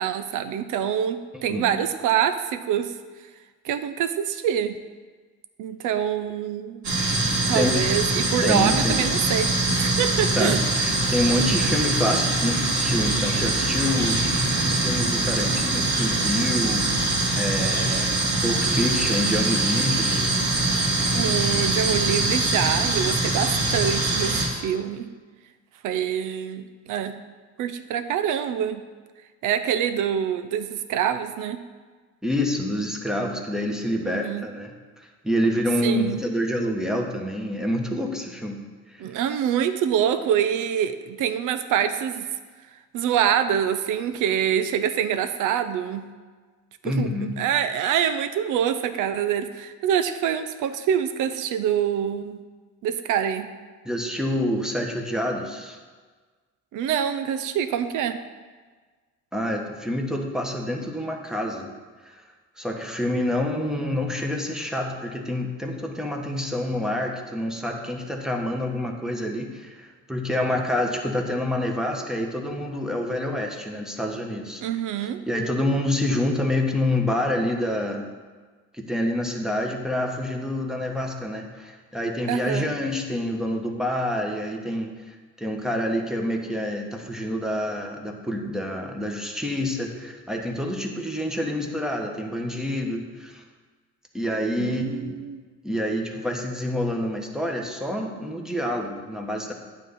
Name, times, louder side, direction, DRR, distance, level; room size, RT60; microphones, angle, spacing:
voice 1, 0.0-2.9 3.6-4.8 5.6-6.9 7.5-10.6 21.1-25.1 25.8-27.2 27.6-28.8 29.4-31.6 34.0-34.5 35.8-36.2 39.0-42.3 42.9-46.1 46.8-47.1 47.4-52.4 52.8-53.5 56.7-58.2 74.6-75.2 82.3-82.7 94.6-95.4, right 9 dB, 85° right, 10 dB, 0.6 m, -25 dB
voice 2, 1.3-1.7 7.5-7.8 8.4-9.0 10.3-16.9 17.4-20.3 32.2-38.6 38.9-39.0 46.8-47.4 53.8-55.8 59.3-61.7 62.0-62.2 62.6-74.6 75.0-78.1 78.7-93.4 94.1-95.2 95.6-99.5, left 1 dB, ahead, 1 dB, 1.1 m, -27 dB
sound 1, 6.8-24.5, right 2 dB, 65° right, 2.4 m, -23 dB
9.1 x 3.9 x 7.0 m, 1.4 s
cardioid pair, 90°, 30 cm